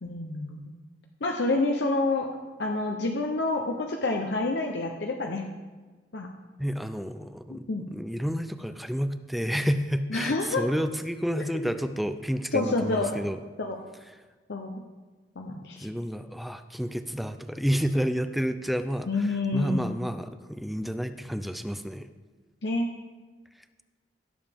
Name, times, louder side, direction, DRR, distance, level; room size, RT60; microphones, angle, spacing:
voice 1, 0.0-0.7 1.2-2.3 2.6-5.5 6.1-6.3 7.5-7.8 10.1-10.7 11.5-11.7 12.5-13.1 13.6-13.8 14.5-14.8 15.4-15.9 19.1-20.0 22.6-22.9, left 2 dB, 70° left, 2 dB, 0.7 m, -28 dB
voice 2, 6.6-13.4 15.8-22.1, equal, ahead, 10 dB, 0.4 m, -30 dB
16.0 x 7.1 x 3.5 m, 1.3 s
head